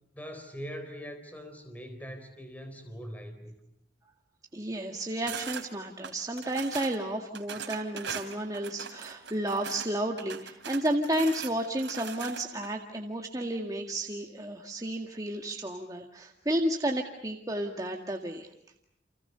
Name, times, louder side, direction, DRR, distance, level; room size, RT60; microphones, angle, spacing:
voice 1, 0.1-3.5, equal, 10° left, 7 dB, 4.1 m, -42 dB
voice 2, 4.5-18.5, right 1 dB, 20° right, 1 dB, 1.9 m, -32 dB
sound 1, 5.3-5.7 6.0-7.0 7.3-9.9 10.2-12.7, right 7 dB, 85° right, 3.2 m, -40 dB
30.0 x 28.5 x 6.8 m, 0.78 s
head